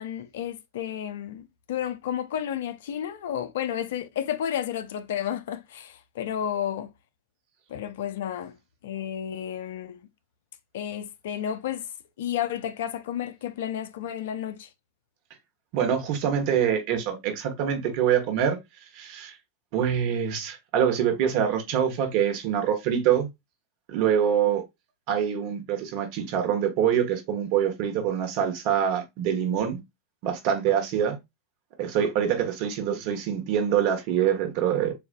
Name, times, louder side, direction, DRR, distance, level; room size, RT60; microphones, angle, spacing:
voice 1, 0.0-6.9 7.7-8.6 8.8-10.0 10.7-11.9 12.2-14.7, left 10 dB, 70° left, 0.5 m, -32 dB
voice 2, 15.7-18.6 18.9-19.4 19.7-23.3 23.9-24.6 25.1-29.8 30.2-31.2 31.8-34.9, right 9 dB, 55° right, 1.1 m, -25 dB
6.8 x 2.4 x 2.2 m
hypercardioid pair, 90°, 0 cm